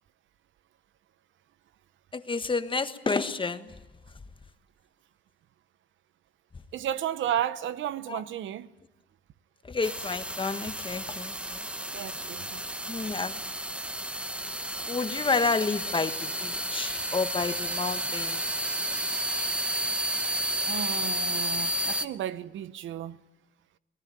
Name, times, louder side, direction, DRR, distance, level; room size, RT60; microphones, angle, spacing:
voice 1, 2.1-3.7 8.1-8.2 9.7-11.6 12.9-13.3 14.9-16.1 16.4-18.4, left 4 dB, 25° left, 1.4 m, -30 dB
voice 2, 6.7-8.7 11.9-12.6 20.7-23.2, right 10 dB, 75° right, 0.9 m, -33 dB
sound 1, 9.8-22.1, right 1 dB, 5° right, 1.0 m, -32 dB
23.5 x 19.0 x 9.1 m
cardioid pair, 90°, 20 cm